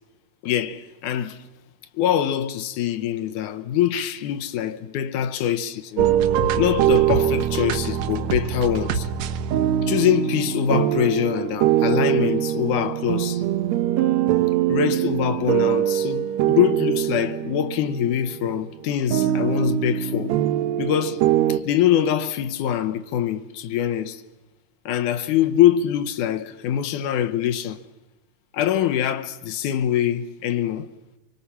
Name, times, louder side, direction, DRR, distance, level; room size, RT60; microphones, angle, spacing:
voice 1, 0.4-1.4 2.0-6.1 6.6-9.1 9.8-13.4 14.7-20.3 20.8-21.2 21.5-24.2 24.9-27.8 28.5-30.9, left 10 dB, 80° left, 2.4 m, -24 dB
sound 1, 6.0-18.6 19.1-21.6, right 11 dB, 70° right, 1.9 m, -23 dB
24.5 x 24.5 x 5.7 m
omnidirectional pair, 3.6 m